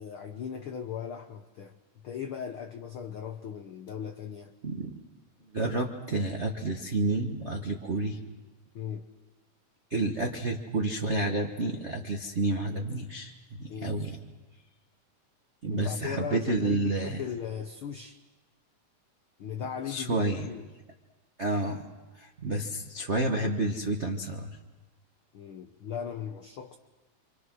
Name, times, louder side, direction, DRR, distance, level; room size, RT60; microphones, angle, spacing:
voice 1, 0.0-1.8 2.0-4.5 8.7-9.1 13.7-14.0 15.7-18.2 19.4-20.7 25.3-26.8, left 8 dB, 80° left, 5 dB, 1.2 m, -38 dB
voice 2, 4.6-5.0 5.5-8.2 9.9-14.2 15.6-17.2 19.9-20.5 21.4-21.8 22.1-24.6, right 2 dB, 85° right, 1 dB, 0.6 m, -30 dB
29.0 x 25.5 x 6.2 m, 1.2 s
omnidirectional pair, 3.7 m